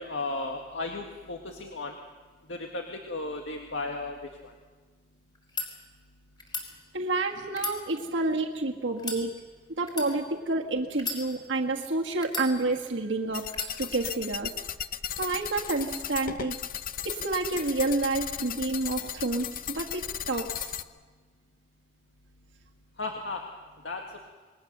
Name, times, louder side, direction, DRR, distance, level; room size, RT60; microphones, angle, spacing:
voice 1, 0.0-2.0 2.5-4.2 4.4-4.5 23.0-23.4 23.8-24.0, left 2 dB, 85° left, 2 dB, 1.9 m, -34 dB
sound 1, 5.3-5.7 6.4-6.7 7.5-8.4 9.0-9.2 9.9-10.1 10.9-11.6 12.2-12.9 13.5-13.7, left 3 dB, 25° left, 4.1 m, -35 dB
voice 2, 6.9-9.3 9.8-13.4 13.8-14.5 15.2-16.6 17.0-20.7, right 2 dB, 80° right, 1 dB, 1.6 m, -29 dB
sound 2, 13.3-20.8, left 9 dB, 50° left, 0.8 m, -36 dB
27.0 x 21.0 x 6.7 m, 1.4 s
head